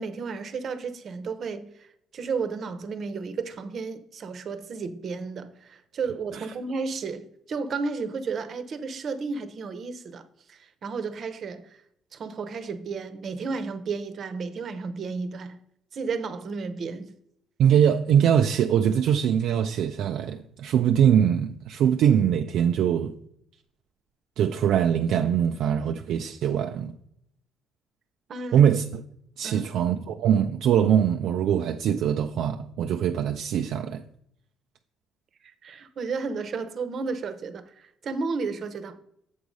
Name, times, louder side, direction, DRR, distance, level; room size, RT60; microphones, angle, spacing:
voice 1, 0.0-11.8 12.1-15.6 15.9-17.1 28.3-28.6 29.4-29.7 35.4-39.0, right 4 dB, 50° right, 0.8 m, -33 dB
voice 2, 17.6-23.1 24.4-26.9 28.5-29.0 29.4-34.0, right 9 dB, 70° right, 0.4 m, -22 dB
7.2 x 4.8 x 5.2 m
cardioid pair, 85°, 0 cm